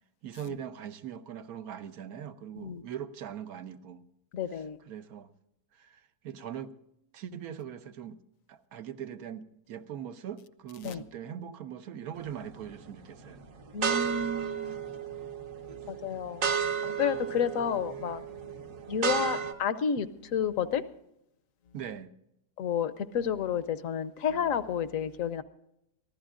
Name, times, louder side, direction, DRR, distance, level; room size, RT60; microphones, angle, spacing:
voice 1, 0.2-4.0 4.5-5.3 5.7-6.7 7.1-8.2 8.5-13.4 14.6-14.7 21.7-22.1, right 9 dB, 80° right, 1.3 m, -41 dB
voice 2, 4.3-4.8 10.8-11.0 13.7-14.8 15.9-16.5 16.8-18.2 18.9-20.8 22.6-25.4, left 7 dB, 70° left, 1.1 m, -30 dB
sound 1, 12.2-12.6 13.2-19.5, right 7 dB, 65° right, 1.3 m, -33 dB
23.5 x 15.0 x 2.5 m
omnidirectional pair, 1.6 m